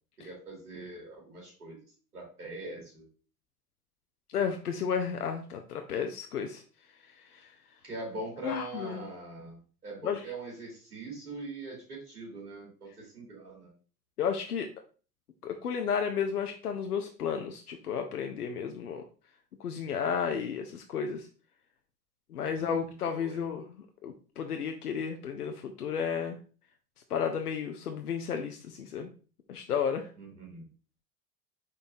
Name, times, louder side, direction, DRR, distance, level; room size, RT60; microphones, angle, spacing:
voice 1, 0.2-1.8 2.1-3.1 7.8-13.7 22.4-23.6 30.2-30.6, right 2 dB, 80° right, -2 dB, 2.1 m, -42 dB
voice 2, 4.3-6.6 7.3-7.5 8.4-9.1 10.0-10.2 14.2-14.7 15.4-19.0 19.6-21.3 22.3-23.7 24.0-26.4 27.1-29.1 29.5-30.1, left 7 dB, 85° left, 5 dB, 0.6 m, -32 dB
5.5 x 3.9 x 2.5 m, 0.37 s
figure-of-eight pair, 80°, 45 cm